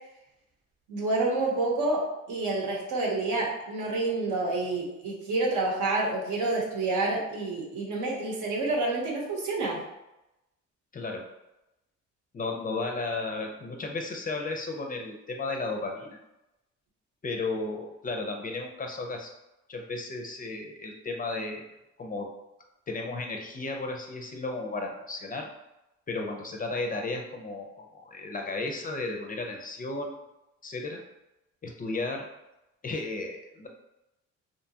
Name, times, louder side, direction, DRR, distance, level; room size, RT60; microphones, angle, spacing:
voice 1, 0.9-9.8, right 2 dB, 75° right, -2 dB, 0.9 m, -28 dB
voice 2, 10.9-11.3 12.3-16.2 17.2-19.3 19.7-21.7 22.0-22.3 22.9-25.5 26.1-30.2 30.6-31.0 31.6-32.3 32.8-33.7, left 3 dB, 30° left, 2 dB, 0.4 m, -34 dB
2.7 x 2.3 x 2.7 m, 0.93 s
cardioid pair, 90°, 30 cm